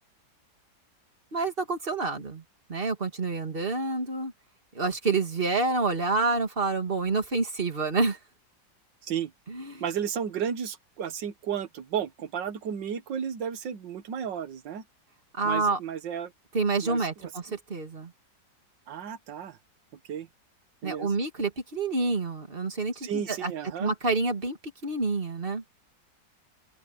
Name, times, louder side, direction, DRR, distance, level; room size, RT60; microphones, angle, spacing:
voice 1, 1.3-2.4 2.7-4.3 4.7-8.2 9.5-9.8 15.3-15.8 16.5-18.1 20.8-23.5 23.8-24.6 24.8-25.6, right 3 dB, 30° right, 2.5 m, -28 dB
voice 2, 9.8-14.8 15.4-16.3 16.8-17.3 18.9-19.6 20.1-20.3 20.8-21.1 23.0-23.9, right 8 dB, 75° right, 1.9 m, -33 dB
open air
omnidirectional pair, 2.0 m